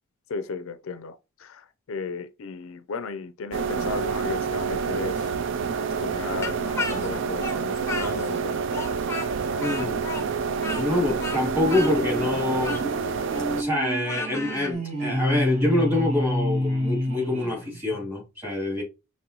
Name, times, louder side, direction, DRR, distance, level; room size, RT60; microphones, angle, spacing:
voice 1, 0.3-5.3 5.8-8.9, left 4 dB, 70° left, 0.4 m, -35 dB
sound 1, 3.5-13.6, right 5 dB, 60° right, 0.4 m, -28 dB
Speech, 6.4-8.4 8.7-14.7, left 3 dB, 15° left, 0.6 m, -34 dB
voice 2, 9.5-10.0 10.6-12.8 13.5-18.8, left 2 dB, 10° right, 2.5 m, -26 dB
sound 2, 10.5-18.1, equal, 30° right, 1.5 m, -29 dB
5.3 x 3.0 x 2.9 m
head